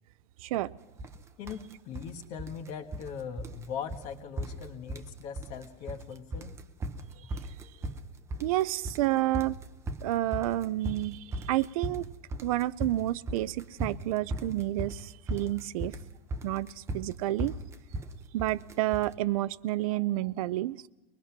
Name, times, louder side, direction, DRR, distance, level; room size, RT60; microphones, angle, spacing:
voice 1, 0.4-0.7 8.4-9.6 10.0-12.1 12.4-15.9 16.4-17.5 18.3-20.9, right 16 dB, 80° right, 0.6 m, -30 dB
sound 1, 1.0-1.2 1.5-2.1 2.4-3.1 3.4-3.6 3.9-4.1 4.4-5.1 5.4-6.0 6.3-19.1, right 1 dB, 15° right, 0.8 m, -37 dB
voice 2, 1.4-6.6, left 7 dB, 40° left, 1.5 m, -40 dB
23.5 x 20.0 x 5.9 m
supercardioid pair, 165°, 18 cm